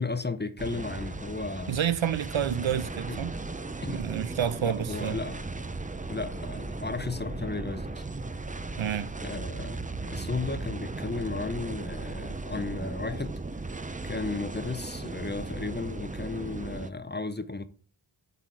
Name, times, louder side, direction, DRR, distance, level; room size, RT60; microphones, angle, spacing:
voice 1, 0.0-1.8 3.1-3.2 3.8-4.0 4.6-5.4 6.1-8.1 9.2-13.4 14.0-17.6, left 3 dB, 20° left, 0.7 m, -34 dB
sound 1, 0.6-16.9, right 3 dB, 15° right, 0.6 m, -36 dB
voice 2, 1.7-3.3 3.9-5.2 8.8-9.2, right 9 dB, 70° right, 0.7 m, -29 dB
8.3 x 4.2 x 4.7 m
cardioid pair, 50°, 48 cm